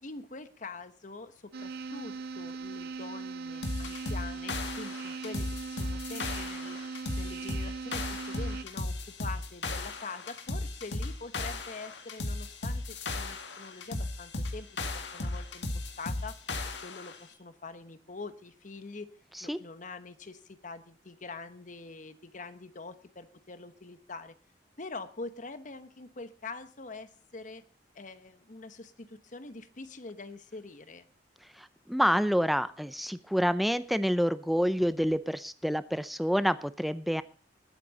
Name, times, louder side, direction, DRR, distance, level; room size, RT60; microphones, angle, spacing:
voice 1, 0.0-6.8 7.2-16.4 16.8-19.1 19.4-24.4 24.8-27.6 27.9-31.1, left 3 dB, 45° left, 11 dB, 1.1 m, -44 dB
sound 1, 1.5-8.6, right 4 dB, 60° right, 0.7 m, -39 dB
sound 2, 3.6-17.2, left 2 dB, 85° left, 1.9 m, -36 dB
voice 2, 31.6-37.2, equal, ahead, 14 dB, 0.6 m, -28 dB
21.0 x 8.5 x 4.1 m, 0.38 s
head